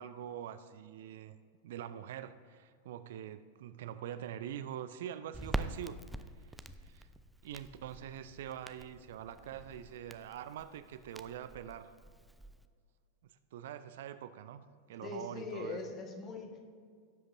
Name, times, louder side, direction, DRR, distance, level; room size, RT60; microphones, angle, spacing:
voice 1, 0.0-1.3 1.6-6.0 6.8-7.1 7.4-11.9 13.5-15.8, right 10 dB, 55° right, 12 dB, 0.4 m, -44 dB
Crackle, 5.3-12.7, right 1 dB, 5° right, 0.5 m, -45 dB
voice 2, 15.0-16.6, left 3 dB, 30° left, 3 dB, 1.5 m, -41 dB
17.5 x 7.9 x 2.7 m, 2.1 s
figure-of-eight pair, 90°, 0 cm